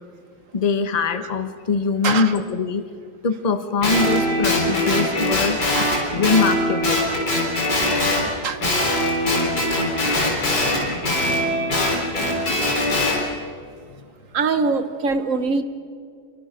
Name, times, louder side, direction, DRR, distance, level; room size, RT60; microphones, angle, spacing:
voice 1, 0.5-2.8 3.2-7.0 14.0-14.1, left 4 dB, 30° left, 9 dB, 0.9 m, -23 dB
Guitar, 3.8-8.3 8.6-13.2, left 1 dB, 70° left, 4.6 m, -21 dB
voice 2, 14.3-15.6, right 4 dB, 50° right, 10 dB, 1.3 m, -22 dB
26.5 x 23.5 x 5.1 m, 2.3 s
omnidirectional pair, 1.9 m